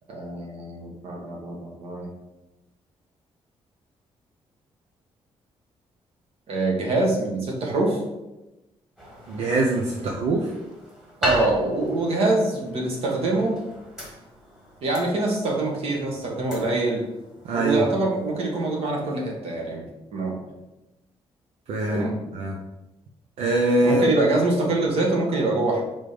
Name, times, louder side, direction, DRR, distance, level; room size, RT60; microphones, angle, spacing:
voice 1, 0.1-2.1 6.5-8.0 10.0-10.1 11.2-13.6 14.8-17.0 17.5-19.8 20.1-20.4 21.9-22.2 23.8-25.8, right 2 dB, 65° right, -1 dB, 1.5 m, -24 dB
sound 1, 9.0-19.1, equal, 5° right, 1.4 m, -36 dB
voice 2, 9.3-10.4 17.4-17.9 21.7-22.1 22.3-22.5 23.4-24.0, right 2 dB, 80° right, -1 dB, 0.8 m, -23 dB
5.1 x 3.8 x 5.0 m, 0.99 s
wide cardioid pair, 170°, 11 cm